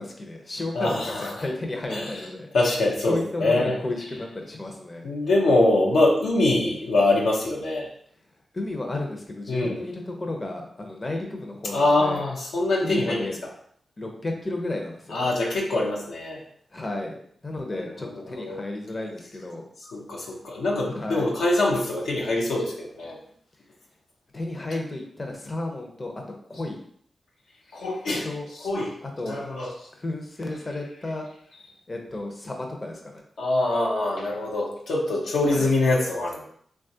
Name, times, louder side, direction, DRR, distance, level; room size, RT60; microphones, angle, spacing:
voice 1, 0.0-0.9 1.2-2.5 3.1-5.1 8.5-12.2 12.8-13.4 14.0-15.3 16.7-19.6 20.9-21.3 24.3-26.1 26.5-26.8 28.2-28.5 29.0-29.4 30.0-31.3 31.9-33.2 35.4-35.7, left 2 dB, 40° left, 2 dB, 0.6 m, -32 dB
voice 2, 0.7-1.5 1.9-3.8 4.1-4.3 5.0-7.9 9.5-9.8 11.6-13.5 15.1-16.4 17.6-18.6 19.8-23.2 24.7-24.8 26.5-26.6 27.7-28.9 29.2-29.9 30.7-31.1 31.5-31.7 33.4-36.5, left 2 dB, 90° left, -3 dB, 0.6 m, -24 dB
3.0 x 2.3 x 2.7 m, 0.63 s
cardioid pair, 45°, 0 cm